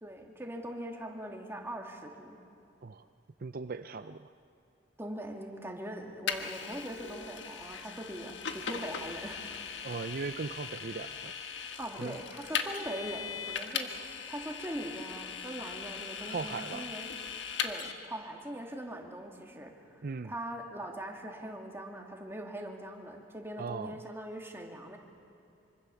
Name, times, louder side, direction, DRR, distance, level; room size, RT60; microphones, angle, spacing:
voice 1, 0.0-2.4 5.0-9.9 11.6-17.1 17.6-25.0, right 1 dB, 15° right, 1 dB, 2.6 m, -41 dB
voice 2, 3.4-4.3 9.8-11.4 12.0-12.2 16.3-16.9 20.0-20.3 23.6-24.0, right 4 dB, 55° right, 10 dB, 0.6 m, -38 dB
Vehicle, 6.3-17.9, left 6 dB, 85° left, 1.6 m, -39 dB
25.0 x 25.0 x 7.2 m, 2.7 s
head